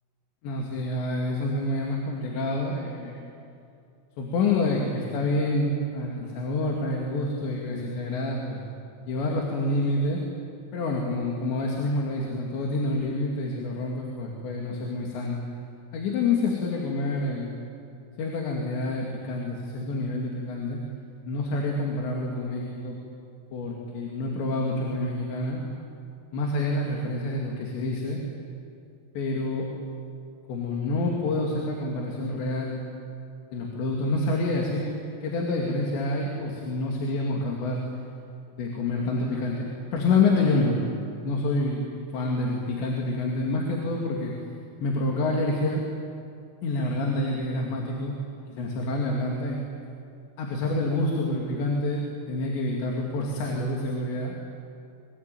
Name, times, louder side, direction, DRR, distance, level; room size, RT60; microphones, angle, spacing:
voice 1, 0.4-3.2 4.2-8.6 9.0-10.2 10.7-15.4 15.9-17.6 18.2-20.8 21.2-23.0 23.5-25.6 26.3-28.2 29.1-29.7 30.5-32.8 33.5-34.9 35.2-37.8 38.6-39.7 39.9-40.8 41.0-41.8 42.1-44.3 44.8-45.8 46.6-48.1 48.5-49.6 50.4-54.3, left 2 dB, 65° left, 0 dB, 4.5 m, -27 dB
27.0 x 22.5 x 9.2 m, 2.5 s
omnidirectional pair, 5.7 m